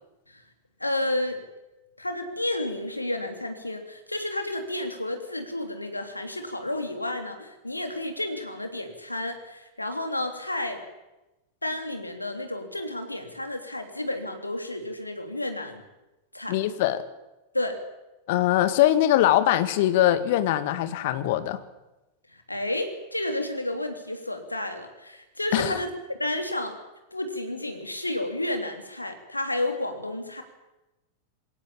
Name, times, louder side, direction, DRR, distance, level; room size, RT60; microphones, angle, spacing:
voice 1, 0.8-1.4 2.0-10.8 11.6-15.8 16.3-16.6 17.5-17.8 22.3-26.8 27.1-30.4, left 1 dB, 85° left, 5 dB, 3.2 m, -31 dB
voice 2, 16.5-17.0 18.3-21.6 25.5-25.8, left 13 dB, 50° left, 12 dB, 1.8 m, -22 dB
21.5 x 18.0 x 8.9 m, 0.99 s
figure-of-eight pair, 90°, 0 cm